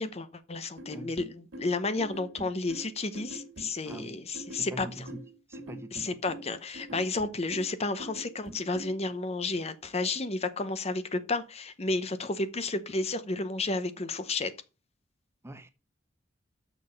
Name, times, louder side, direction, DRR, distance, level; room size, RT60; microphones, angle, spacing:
voice 1, 0.0-4.9 5.9-14.5, left 3 dB, 35° left, 0.8 m, -32 dB
sound 1, 0.8-9.0, right 1 dB, 85° right, 2.0 m, -45 dB
voice 2, 3.8-4.2 4.5-5.2 5.5-6.2 6.9-7.1 15.4-15.7, right 1 dB, 15° right, 0.8 m, -44 dB
6.9 x 6.1 x 5.3 m
head